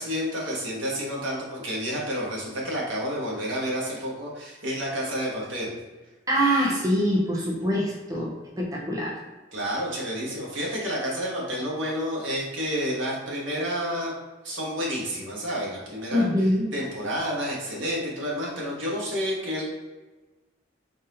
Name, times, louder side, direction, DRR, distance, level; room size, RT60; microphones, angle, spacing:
voice 1, 0.0-5.7 9.5-14.1 14.4-19.6, equal, 85° right, -4 dB, 1.3 m, -30 dB
voice 2, 6.3-9.2 16.1-16.7, equal, 20° right, -3 dB, 0.6 m, -24 dB
4.0 x 2.6 x 3.8 m, 1.2 s
head